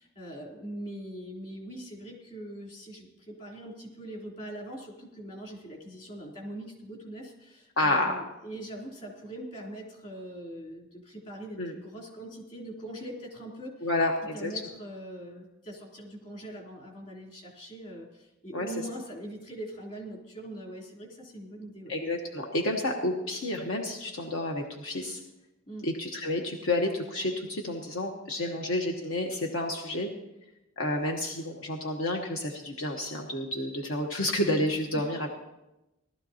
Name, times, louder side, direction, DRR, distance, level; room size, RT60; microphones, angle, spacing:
voice 1, 0.0-13.9 14.3-21.9 25.7-25.9 28.4-28.6 34.9-35.1, right 1 dB, 40° left, -2 dB, 3.2 m, -42 dB
voice 2, 7.8-8.2 11.6-11.8 13.8-14.6 18.5-18.7 21.9-25.2 25.8-30.1 30.8-35.4, left 1 dB, 75° left, 1 dB, 1.1 m, -30 dB
18.5 x 12.5 x 2.8 m, 0.96 s
head